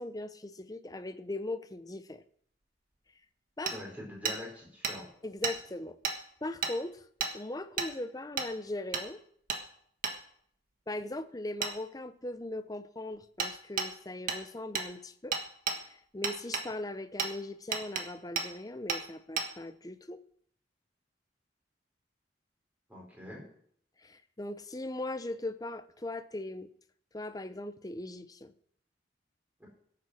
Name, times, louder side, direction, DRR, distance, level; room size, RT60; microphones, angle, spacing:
voice 1, 0.0-2.2 3.6-3.8 5.2-6.0 6.4-7.0 7.3-9.2 10.9-15.4 15.8-20.2 24.0-26.7 27.1-28.5, left 2 dB, 20° left, 12 dB, 0.7 m, -39 dB
voice 2, 3.7-5.1 22.9-23.4 29.6-29.7, left 1 dB, 10° right, -2 dB, 5.2 m, -44 dB
Hammer, 3.7-3.8 4.3-4.4 4.8-5.0 5.4-5.6 6.0-6.2 6.6-6.7 7.2-7.3 7.8-7.9 8.4-8.5 8.9-9.1 9.5-9.6 10.0-10.2 11.6-11.7 13.4-13.5 13.8-13.9 14.3-14.4 14.8-14.9 15.3-15.8 16.2-16.7 17.2-17.3 17.7-18.1 18.4-18.5 18.9-19.0 19.4-19.5, right 5 dB, 50° right, 1.6 m, -32 dB
16.0 x 8.5 x 6.3 m, 0.64 s
head